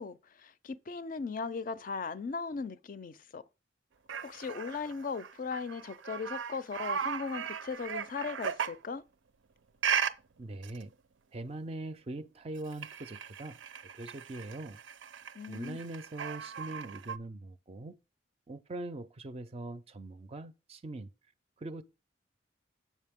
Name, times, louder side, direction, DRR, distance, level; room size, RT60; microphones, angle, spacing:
voice 1, 0.0-3.4 4.2-9.0 15.3-15.8, left 5 dB, 45° left, 0.4 m, -38 dB
sound 1, 4.1-8.8 9.8-10.1 10.6-10.8 12.6-17.2, right 7 dB, 85° right, 0.5 m, -37 dB
voice 2, 10.4-10.9 11.3-14.8 15.5-18.0 18.5-21.1 21.6-21.8, right 2 dB, 30° right, 0.4 m, -42 dB
7.4 x 5.4 x 3.5 m
head